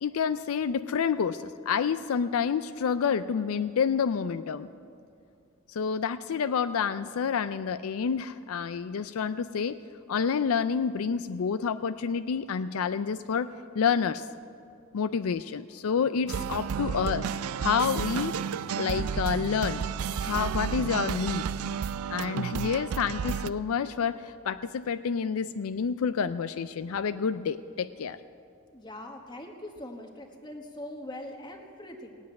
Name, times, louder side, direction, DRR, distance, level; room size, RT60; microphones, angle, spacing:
voice 1, 0.0-4.7 5.7-9.8 10.1-14.3 14.9-17.3 17.6-18.4 18.8-19.8 20.2-21.4 22.1-28.2, left 6 dB, 75° left, 12 dB, 0.4 m, -28 dB
sound 1, 16.3-23.5, right 7 dB, 80° right, 0.4 m, -32 dB
voice 2, 28.7-32.1, left 1 dB, 20° left, 3 dB, 1.3 m, -42 dB
17.5 x 8.0 x 9.5 m, 2.4 s
head